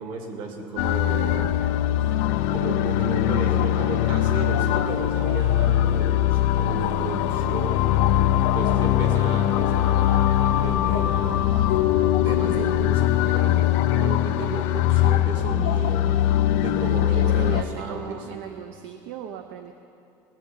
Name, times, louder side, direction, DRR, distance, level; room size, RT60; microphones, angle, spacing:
voice 1, 0.0-1.6 2.5-7.8 8.5-11.5 12.2-16.0 16.6-18.2, right 3 dB, 55° right, 3 dB, 2.0 m, -33 dB
sound 1, 0.8-17.6, left 13 dB, 75° left, 0.5 m, -21 dB
voice 2, 16.6-19.7, right 9 dB, 70° right, 7 dB, 0.7 m, -37 dB
19.0 x 6.6 x 8.6 m, 2.8 s
cardioid pair, 175°, 10 cm